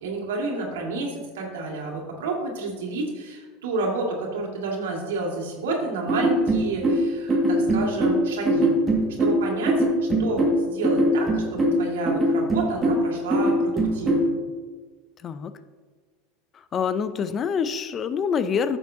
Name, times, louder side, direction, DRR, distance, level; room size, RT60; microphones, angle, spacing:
voice 1, 0.0-8.7 9.2-14.3, right 3 dB, 90° right, -1 dB, 1.9 m, -30 dB
sound 1, 6.1-14.3, right 1 dB, 20° right, 1.8 m, -22 dB
voice 2, 16.7-18.8, left 6 dB, 30° left, 13 dB, 0.5 m, -26 dB
10.0 x 7.1 x 2.7 m, 1.4 s
supercardioid pair, 120°, 0 cm